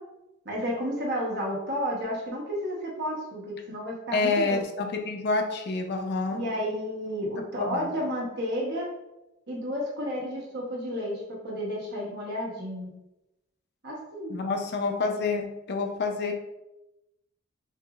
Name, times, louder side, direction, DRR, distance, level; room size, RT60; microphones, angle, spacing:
voice 1, 0.4-4.5 6.3-8.9 9.5-12.9 13.8-14.4, equal, 55° right, -3 dB, 1.0 m, -32 dB
voice 2, 4.1-6.4 7.6-7.9 14.3-16.3, left 3 dB, 55° left, 4 dB, 0.5 m, -28 dB
4.6 x 2.9 x 2.4 m, 0.94 s
head